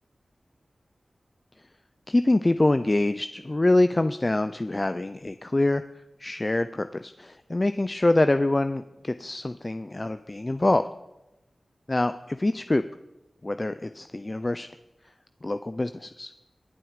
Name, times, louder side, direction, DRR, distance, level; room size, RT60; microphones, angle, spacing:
voice 1, 2.1-5.8 6.2-10.8 11.9-12.8 13.4-14.7 15.4-16.3, left 2 dB, 35° left, 11 dB, 0.5 m, -25 dB
22.5 x 7.8 x 5.0 m, 0.97 s
cardioid pair, 55°, 0 cm